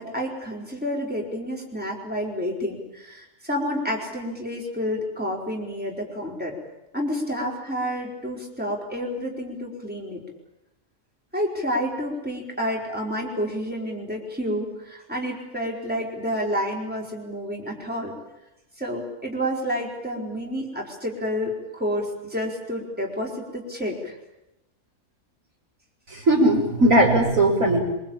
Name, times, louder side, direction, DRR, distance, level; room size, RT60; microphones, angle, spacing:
voice 1, 0.0-6.5 6.9-10.2 11.3-18.1 18.8-24.2, equal, 5° right, -1 dB, 4.8 m, -29 dB
voice 2, 26.1-27.8, right 1 dB, 65° right, 1 dB, 5.6 m, -18 dB
25.0 x 23.5 x 8.9 m, 0.90 s
omnidirectional pair, 1.5 m